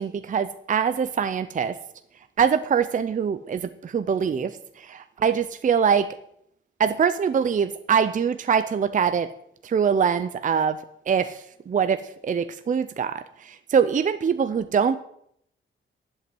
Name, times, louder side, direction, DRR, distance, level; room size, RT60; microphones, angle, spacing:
voice 1, 0.0-1.7 2.4-4.5 4.8-6.1 6.8-9.3 9.6-10.8 11.1-11.4 11.7-15.0, right 7 dB, 40° right, 11 dB, 0.5 m, -23 dB
11.0 x 8.1 x 7.7 m, 0.72 s
wide cardioid pair, 145°, 21 cm